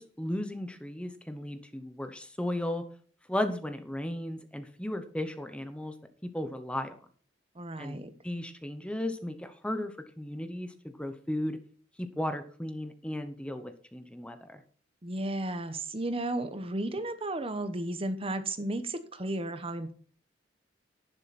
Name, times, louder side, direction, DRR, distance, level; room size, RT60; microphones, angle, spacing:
voice 1, 0.0-2.9 3.3-6.0 6.3-7.0 7.8-10.7 11.0-11.6 12.0-14.6, left 1 dB, 5° left, 8 dB, 0.9 m, -35 dB
voice 2, 7.5-8.1 15.0-19.9, right 1 dB, 30° right, 11 dB, 1.1 m, -33 dB
11.5 x 10.5 x 4.2 m, 0.43 s
head